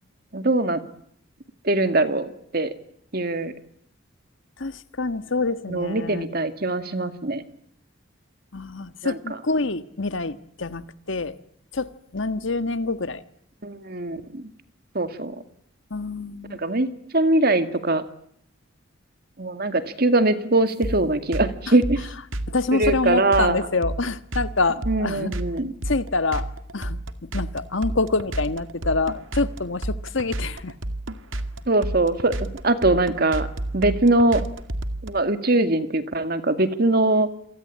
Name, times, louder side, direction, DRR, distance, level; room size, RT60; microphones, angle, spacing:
voice 1, 0.3-0.8 1.6-2.7 3.1-3.5 5.7-7.4 9.0-9.2 13.6-14.4 14.9-15.4 16.6-16.9 17.1-18.0 19.4-22.0 22.7-23.6 24.9-25.7 31.7-33.5 33.7-34.4 35.0-37.3, right 2 dB, 50° right, 2.2 m, -22 dB
voice 2, 4.6-6.3 8.5-11.4 11.7-13.2 15.9-16.6 21.7-21.8 22.5-25.3 25.8-27.0 27.3-30.7, left 3 dB, 70° left, 1.4 m, -26 dB
sound 1, 20.8-35.1, right 1 dB, 75° right, 2.0 m, -30 dB
28.5 x 24.0 x 8.6 m
head